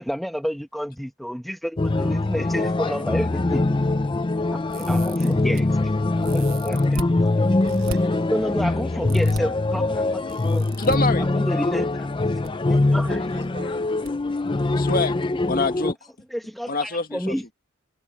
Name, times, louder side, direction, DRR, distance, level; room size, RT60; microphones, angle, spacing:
voice 1, 0.0-3.7 4.7-5.7 6.3-7.1 7.4-7.5 8.3-10.8 11.4-12.1 12.7-13.2 16.3-17.4, equal, ahead, 1.2 m, -30 dB
sound 1, 1.8-15.9, left 2 dB, 25° left, 0.5 m, -23 dB
sound 2, 4.7-5.6 6.2-7.1 7.7-8.0 9.1-9.4 10.3-11.0 12.1-12.5 12.8-12.9 14.0-14.1 14.5-14.6, right 4 dB, 70° right, 1.1 m, -37 dB
voice 2, 7.5-8.5 12.3-14.0, right 3 dB, 55° right, 6.7 m, -46 dB
voice 3, 10.8-11.3 14.6-15.2 15.5-16.0 16.7-17.3, left 3 dB, 45° left, 1.9 m, -25 dB
head